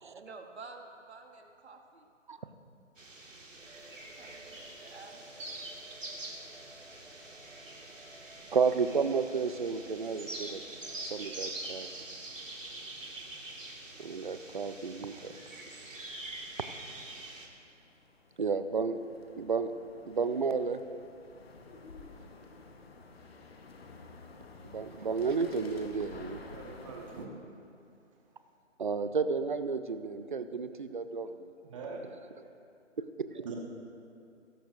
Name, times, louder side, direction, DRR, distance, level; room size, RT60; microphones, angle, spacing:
voice 1, 0.1-2.1 3.8-7.9, right 3 dB, 55° right, 4 dB, 1.3 m, -53 dB
sound 1, 3.0-17.5, right 2 dB, 85° right, 2.0 m, -45 dB
sound 2, 3.5-11.9, right 1 dB, 5° left, 2.3 m, -56 dB
voice 2, 8.5-10.6 11.1-11.9 14.0-15.3 18.4-19.0 19.4-19.7 20.1-20.8 24.6-26.4 28.8-31.5 33.2-33.3, right 5 dB, 40° right, 10 dB, 0.5 m, -32 dB
sound 3, 15.7-27.3, left 3 dB, 50° left, 1.2 m, -52 dB
voice 3, 26.5-27.3 31.6-32.0 33.3-33.5, right 5 dB, 25° right, -1 dB, 1.4 m, -42 dB
16.5 x 14.5 x 2.5 m, 2.5 s
figure-of-eight pair, 155°, 38 cm